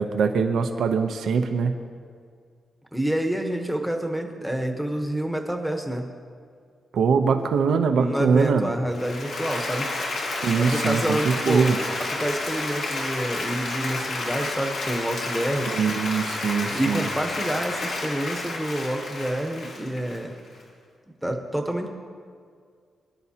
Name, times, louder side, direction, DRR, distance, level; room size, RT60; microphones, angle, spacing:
voice 1, 0.0-1.8 6.9-8.7 10.4-11.8 15.6-17.1, right 5 dB, 75° right, 6 dB, 0.7 m, -22 dB
voice 2, 2.9-6.1 7.9-9.9 10.6-11.8 12.2-15.7 16.7-20.3 21.2-21.9, right 1 dB, ahead, 3 dB, 1.0 m, -28 dB
Applause, 8.9-20.6, left 2 dB, 85° left, 2.2 m, -30 dB
22.0 x 11.0 x 2.9 m, 2.1 s
wide cardioid pair, 165°, 0 cm